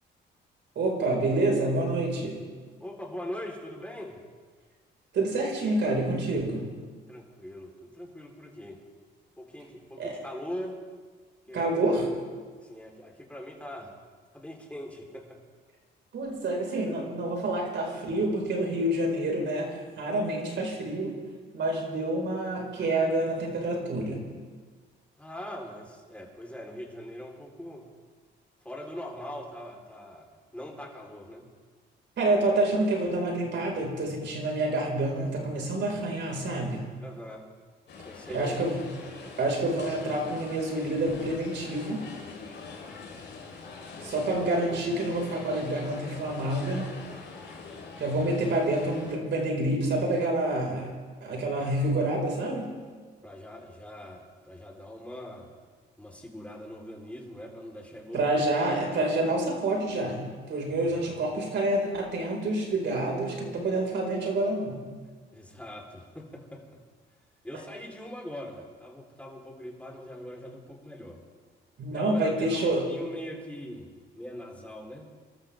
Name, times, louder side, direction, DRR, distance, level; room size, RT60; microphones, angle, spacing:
voice 1, 0.7-2.4 5.1-6.7 10.0-10.1 11.5-12.1 16.1-21.1 21.5-24.2 32.2-36.9 38.3-38.8 39.4-42.1 44.0-46.9 48.0-50.9 51.2-52.7 58.1-64.8 71.8-72.9, right 2 dB, 65° right, 0 dB, 5.1 m, -28 dB
voice 2, 2.8-4.2 7.1-8.8 9.4-10.8 11.5-11.9 12.6-13.9 14.3-15.4 25.2-27.9 28.6-30.3 30.5-31.5 37.0-37.5 38.0-38.7 53.2-55.5 56.0-58.5 60.9-61.1 65.3-66.8 67.4-71.2 71.9-73.9 74.1-75.0, left 1 dB, 5° left, 0 dB, 3.9 m, -41 dB
sound 1, 37.9-49.1, left 4 dB, 60° left, 4.2 m, -43 dB
28.5 x 13.5 x 3.6 m, 1.5 s
cardioid pair, 90°, 20 cm